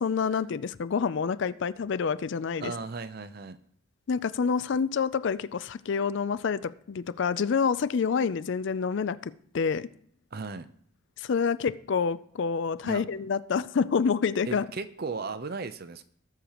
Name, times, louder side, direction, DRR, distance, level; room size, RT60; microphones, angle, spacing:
voice 1, 0.0-2.7 4.1-9.9 11.2-14.6, left 5 dB, 60° left, 16 dB, 0.4 m, -28 dB
voice 2, 2.6-3.6 10.3-10.7 12.8-13.0 14.5-16.0, right 4 dB, 45° right, 11 dB, 0.6 m, -36 dB
18.5 x 6.5 x 3.0 m, 0.63 s
head